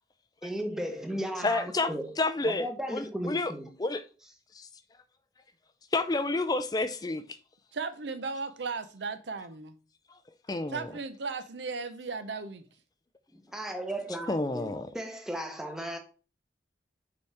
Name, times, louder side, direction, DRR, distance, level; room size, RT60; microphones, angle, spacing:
voice 1, 0.4-2.2 2.4-3.8 13.3-16.0, equal, 5° right, 0.8 m, -36 dB
voice 2, 1.4-3.5 3.8-4.0 4.5-4.7 5.9-7.2 10.5-10.9 14.3-14.9, left 2 dB, 20° left, 0.4 m, -30 dB
voice 3, 7.7-9.8 10.7-12.6, right 4 dB, 75° right, 0.7 m, -36 dB
6.8 x 4.9 x 3.4 m
head